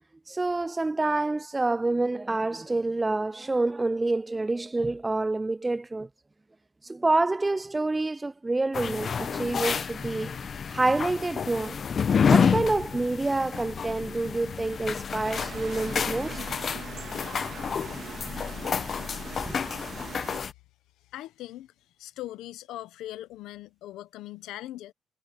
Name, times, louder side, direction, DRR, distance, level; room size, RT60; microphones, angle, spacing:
voice 1, 0.3-6.1 6.9-10.4 10.7-11.8 12.3-16.4 19.4-19.6, right 2 dB, 20° right, 0.3 m, -27 dB
sound 1, 8.7-20.5, left 6 dB, 45° left, 0.7 m, -29 dB
sound 2, 15.2-20.4, right 7 dB, 55° right, 1.7 m, -42 dB
voice 2, 21.1-21.7 22.0-24.9, left 14 dB, 90° left, 0.9 m, -40 dB
cardioid pair, 90°, 0 cm